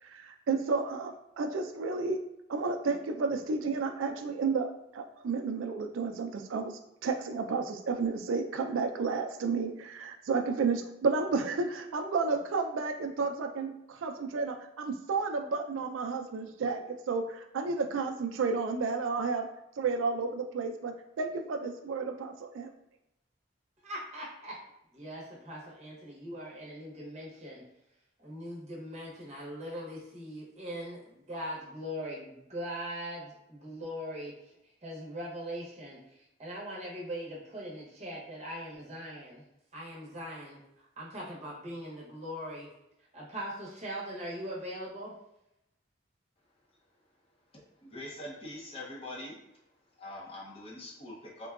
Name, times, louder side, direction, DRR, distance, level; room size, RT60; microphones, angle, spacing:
voice 1, 0.0-2.2 2.5-19.5 19.8-22.7, right 4 dB, 75° right, 5 dB, 0.4 m, -32 dB
voice 2, 23.8-24.6 24.9-27.6 28.2-34.5 34.8-39.4 39.7-42.7 43.1-45.1, equal, 35° right, -5 dB, 0.8 m, -41 dB
voice 3, 47.5-49.4 50.0-51.5, left 1 dB, 30° left, -3 dB, 0.6 m, -43 dB
3.7 x 2.2 x 2.3 m, 0.84 s
head